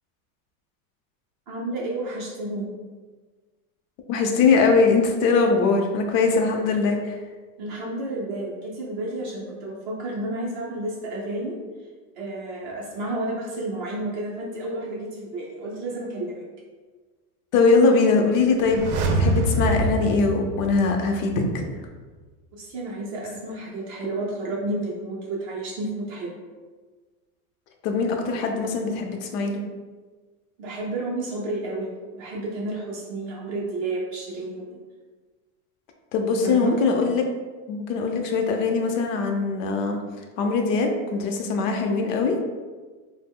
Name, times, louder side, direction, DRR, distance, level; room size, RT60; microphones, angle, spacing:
voice 1, 1.5-2.7 6.7-6.8 7.6-11.6 12.2-16.4 22.6-26.4 30.6-34.8 36.4-36.8, right 2 dB, 35° right, -3 dB, 0.4 m, -31 dB
voice 2, 4.1-7.0 17.5-21.7 27.8-29.6 36.1-37.2 37.7-40.0 40.4-42.3, left 4 dB, 65° left, 3 dB, 0.6 m, -21 dB
sound 1, 18.6-21.5 21.8-21.9, right 2 dB, 85° right, 0.6 m, -25 dB
2.9 x 2.0 x 3.5 m, 1.4 s
supercardioid pair, 170°, 42 cm